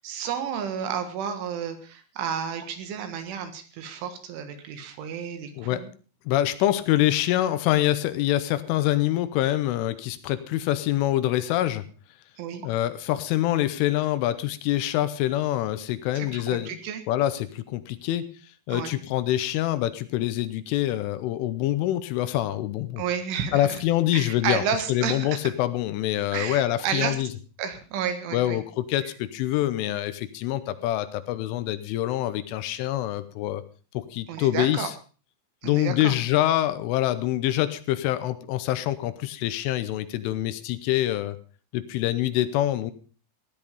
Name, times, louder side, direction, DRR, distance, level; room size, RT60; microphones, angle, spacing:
voice 1, 0.0-5.9 12.4-12.7 16.2-17.0 18.7-18.9 23.0-23.8 24.1-25.4 26.3-27.2 27.6-28.6 29.0-29.1 34.3-34.9 35.6-36.1, right 7 dB, 75° right, 8 dB, 3.9 m, -31 dB
voice 2, 6.3-11.8 12.6-16.7 17.1-18.3 18.7-23.0 23.5-24.6 24.9-27.3 28.3-33.6 33.9-34.9 35.6-41.4 41.7-42.9, left 14 dB, 80° left, 13 dB, 3.2 m, -25 dB
15.5 x 10.5 x 5.2 m, 0.37 s
omnidirectional pair, 5.9 m